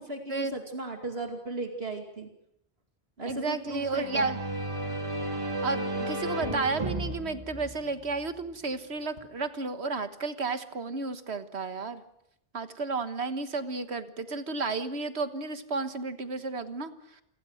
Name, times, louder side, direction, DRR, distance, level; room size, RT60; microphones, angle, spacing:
voice 1, 0.0-2.3 3.2-4.3, right 2 dB, 70° right, 4 dB, 2.7 m, -36 dB
voice 2, 3.3-4.4 5.6-12.0 12.5-17.2, right 3 dB, 85° right, 10 dB, 1.7 m, -32 dB
sound 1, 3.7-8.5, right 1 dB, 30° right, 3.3 m, -34 dB
28.5 x 22.0 x 6.5 m, 0.77 s
omnidirectional pair, 1.1 m